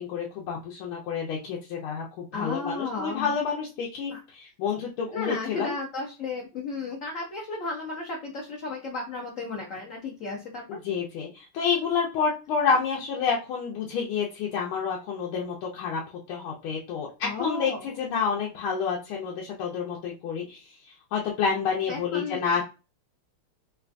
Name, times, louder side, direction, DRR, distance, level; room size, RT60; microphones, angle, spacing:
voice 1, 0.0-5.7 10.7-16.0 16.3-20.7 21.1-22.6, left 6 dB, 90° left, -3 dB, 1.6 m, -29 dB
voice 2, 2.3-3.3 4.1-4.2 5.1-10.8 17.2-17.9 21.9-22.6, left 3 dB, 70° left, -2 dB, 0.7 m, -34 dB
3.7 x 2.2 x 2.5 m, 0.30 s
omnidirectional pair, 2.3 m